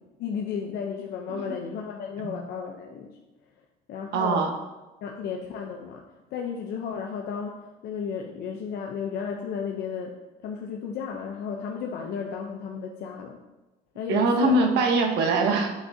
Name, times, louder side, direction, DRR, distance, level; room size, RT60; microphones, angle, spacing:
voice 1, 0.2-3.1 3.9-4.5 5.0-6.0 6.3-10.2 10.4-13.4 14.0-14.6, left 6 dB, 70° left, 1 dB, 0.7 m, -33 dB
voice 2, 4.1-4.5 14.1-15.7, right 3 dB, 85° right, 3 dB, 1.1 m, -23 dB
8.8 x 5.9 x 2.7 m, 1.1 s
cardioid pair, 110°, 17 cm